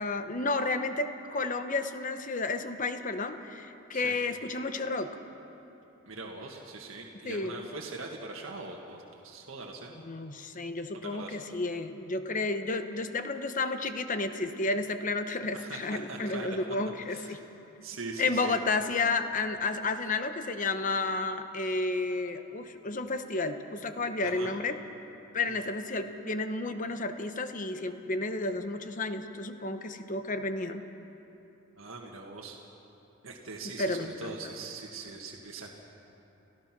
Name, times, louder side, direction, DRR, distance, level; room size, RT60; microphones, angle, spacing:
voice 1, 0.0-5.1 7.2-7.6 10.0-17.4 18.2-24.8 25.3-30.8 33.8-34.4, left 3 dB, 40° left, 8 dB, 1.0 m, -31 dB
voice 2, 6.0-9.9 10.9-11.4 15.5-16.6 17.1-17.4 17.8-18.6 24.2-24.5 25.4-25.6 31.8-32.6 33.2-35.7, right 3 dB, 80° right, -1 dB, 1.7 m, -42 dB
29.5 x 15.0 x 6.1 m, 3.0 s
head